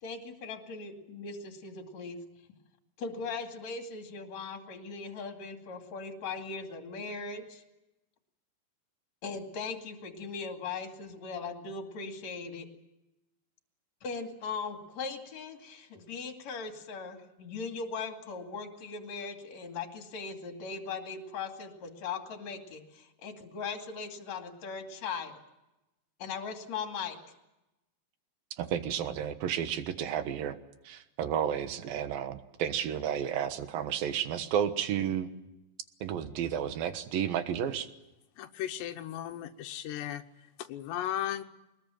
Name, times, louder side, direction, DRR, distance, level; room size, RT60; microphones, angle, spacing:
voice 1, 0.0-2.2 3.0-7.6 9.2-12.7 14.0-25.4 26.2-27.2, left 5 dB, 45° left, 5 dB, 3.2 m, -39 dB
voice 2, 28.6-30.6 30.8-35.3 36.0-37.9, right 9 dB, 65° right, 10 dB, 2.8 m, -32 dB
voice 3, 38.4-40.2 40.6-41.4, left 11 dB, 90° left, 8 dB, 3.2 m, -36 dB
23.0 x 20.5 x 9.0 m, 0.94 s
omnidirectional pair, 4.8 m